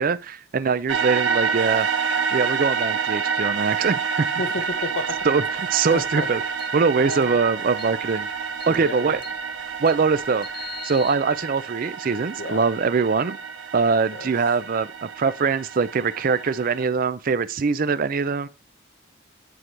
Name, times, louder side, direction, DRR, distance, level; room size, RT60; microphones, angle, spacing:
voice 1, 0.0-1.9 2.3-4.3 5.2-6.4 6.7-8.3 8.7-9.2 9.8-13.4 13.7-18.5, right 5 dB, 45° right, 0.4 m, -23 dB
sound 1, 0.9-16.8, right 6 dB, 75° right, 1.2 m, -28 dB
voice 2, 4.4-5.3 5.9-6.3 7.0-7.4 8.6-9.2 12.4-12.7 14.1-14.3, left 2 dB, 60° left, 0.8 m, -31 dB
sound 2, 4.7-11.1, left 7 dB, 25° left, 1.0 m, -45 dB
9.8 x 4.5 x 3.3 m
head